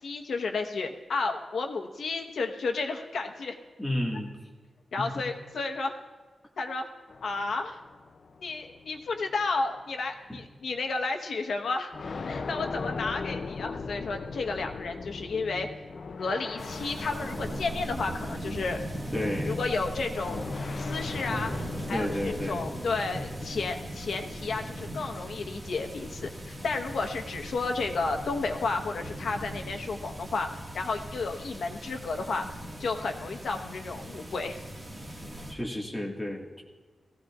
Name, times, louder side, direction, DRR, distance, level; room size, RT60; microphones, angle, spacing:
voice 1, 0.0-3.5 4.9-6.0 6.6-6.9 7.2-7.8 8.4-11.9 12.3-15.7 16.2-18.8 19.5-20.4 20.8-21.5 21.9-30.5 30.7-32.5 32.8-34.6, left 3 dB, 75° left, 3 dB, 1.1 m, -32 dB
voice 2, 3.8-4.3 5.0-5.1 10.3-10.4 19.1-19.6 21.9-22.7 35.5-36.6, left 1 dB, 5° left, -2 dB, 1.8 m, -32 dB
sound 1, 7.1-9.8 10.7-10.8 11.9-19.2 20.1-22.7, left 4 dB, 50° left, 0.5 m, -39 dB
sound 2, 16.6-35.5, equal, 15° right, 1.8 m, -38 dB
18.5 x 15.5 x 2.4 m, 1.4 s
wide cardioid pair, 140°, 0 cm